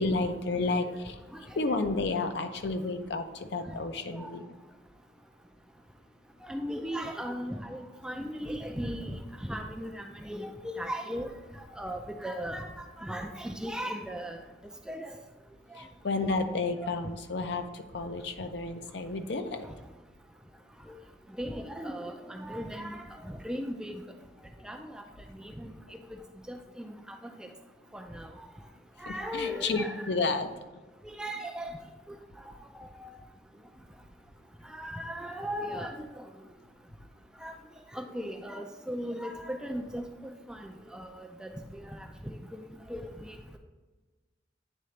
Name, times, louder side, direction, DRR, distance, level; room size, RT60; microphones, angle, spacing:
voice 1, 0.0-4.5 15.7-19.7 25.9-26.0 29.1-30.5, left 3 dB, 65° left, 8 dB, 0.5 m, -31 dB
voice 2, 6.4-11.3 11.8-14.4 14.9-15.2 15.7-15.8 16.3-16.5 16.8-16.9 20.9-21.0 21.4-24.0 24.6-25.0 25.3-25.7 26.1-26.2 26.5-27.5 27.9-28.3 29.0-30.1 31.0-31.8 32.1-32.2 32.7-33.1 34.6-36.2 37.4-37.5 37.9-40.0 40.5-42.6 42.9-43.4, equal, 5° right, 4 dB, 0.3 m, -37 dB
9.0 x 3.8 x 3.2 m, 1.2 s
head